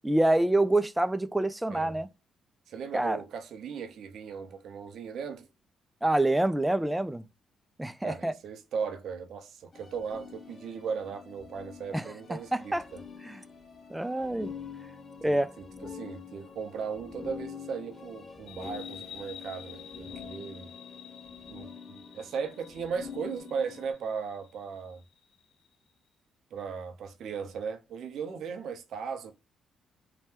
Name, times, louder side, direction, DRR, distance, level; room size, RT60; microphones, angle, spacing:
voice 1, 0.0-2.1 2.9-3.2 6.0-7.2 7.8-8.3 11.9-12.1 12.5-12.9 13.2-13.4 13.9-14.5 15.2-15.5, right 1 dB, 10° right, 0.3 m, -26 dB
voice 2, 2.7-5.5 8.0-13.0 15.3-15.5 15.8-20.7 21.5-25.0 26.5-29.3, right 6 dB, 70° right, 0.5 m, -37 dB
sound 1, 9.7-23.9, left 6 dB, 40° left, 0.6 m, -46 dB
sound 2, 18.5-25.7, left 8 dB, 85° left, 0.8 m, -50 dB
2.8 x 2.2 x 3.3 m
cardioid pair, 90°, 0 cm